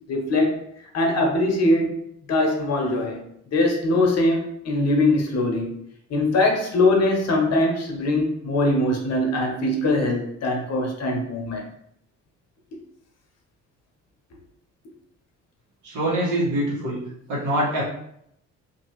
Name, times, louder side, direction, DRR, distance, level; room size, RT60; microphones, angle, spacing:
voice 1, 0.1-0.6 0.9-2.0 2.3-3.2 3.5-5.7 6.1-11.6, left 2 dB, 60° left, 1 dB, 0.7 m, -22 dB
voice 2, 15.8-17.0 17.3-17.8, right 1 dB, 80° right, -7 dB, 1.5 m, -24 dB
2.6 x 2.6 x 3.0 m, 0.74 s
cardioid pair, 90°, 30 cm